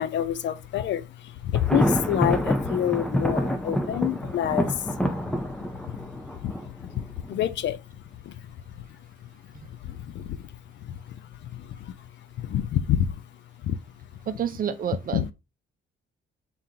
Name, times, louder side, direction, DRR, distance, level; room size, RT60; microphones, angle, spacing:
voice 1, 0.0-4.9 5.7-6.1 6.4-7.8 8.3-8.4 9.8-10.4 10.8-11.2 11.5-11.9 12.4-13.1 13.6-13.8 15.1-15.3, left 11 dB, 60° left, 0.4 m, -28 dB
Thunder, 1.5-7.4, equal, 5° left, 0.6 m, -27 dB
voice 2, 14.3-15.3, right 8 dB, 45° right, 0.5 m, -29 dB
3.7 x 3.7 x 2.8 m
cardioid pair, 120°, 21 cm